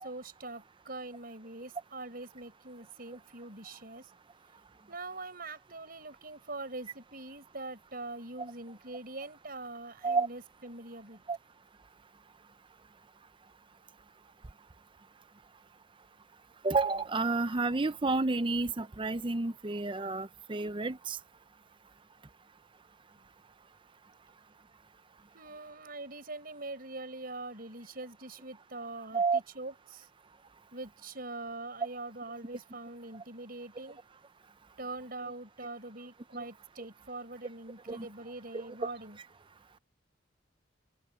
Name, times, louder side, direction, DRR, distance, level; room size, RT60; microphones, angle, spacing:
voice 1, 0.0-4.1 4.9-11.2 25.3-30.1 30.7-34.0 34.8-39.2, right 2 dB, 50° right, 6.1 m, -43 dB
voice 2, 16.6-21.2 29.1-29.4 37.9-38.1 38.8-38.9, right 3 dB, 25° right, 0.6 m, -30 dB
open air
head